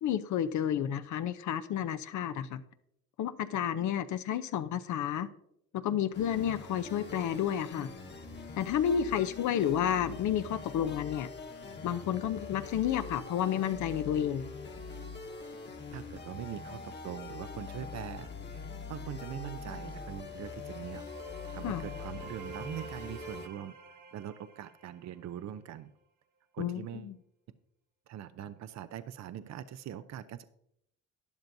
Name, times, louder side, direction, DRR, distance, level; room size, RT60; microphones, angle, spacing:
voice 1, 0.0-2.6 3.2-5.3 5.8-7.9 8.6-11.3 11.8-14.5 21.6-21.8 26.6-27.1, left 9 dB, 70° left, 10 dB, 0.6 m, -31 dB
sound 1, 6.1-23.5, left 4 dB, 35° left, 1.2 m, -43 dB
voice 2, 15.9-23.7 24.1-25.9 26.5-27.1 28.1-30.4, right 10 dB, 60° right, 13 dB, 0.6 m, -42 dB
sound 2, 20.0-25.7, right 4 dB, 80° right, 1.4 m, -51 dB
12.0 x 10.5 x 2.7 m, 0.76 s
cardioid pair, 90°, 30 cm